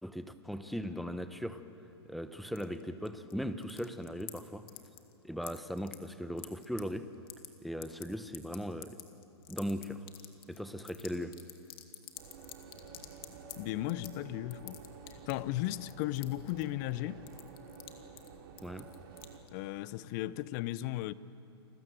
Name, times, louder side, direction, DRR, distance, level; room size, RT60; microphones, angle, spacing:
voice 1, 0.0-1.6 2.1-4.7 5.2-7.1 7.6-9.0 9.5-10.0 10.5-11.4 18.6-18.9, equal, ahead, 1.0 m, -38 dB
sound 1, 2.6-3.3 3.6-4.4 4.7-5.1 5.4-6.8 7.1-7.5 7.8-13.6 13.9-14.2 14.5-15.4 15.8-17.0 17.3-17.9 18.2-18.3 18.6-19.5, left 14 dB, 60° left, 2.4 m, -47 dB
sound 2, 12.2-19.4, right 5 dB, 55° right, 3.6 m, -51 dB
voice 2, 13.6-14.8 15.3-17.2 19.5-21.1, left 15 dB, 45° left, 0.8 m, -35 dB
29.5 x 20.5 x 7.7 m
hypercardioid pair, 130°, 14 cm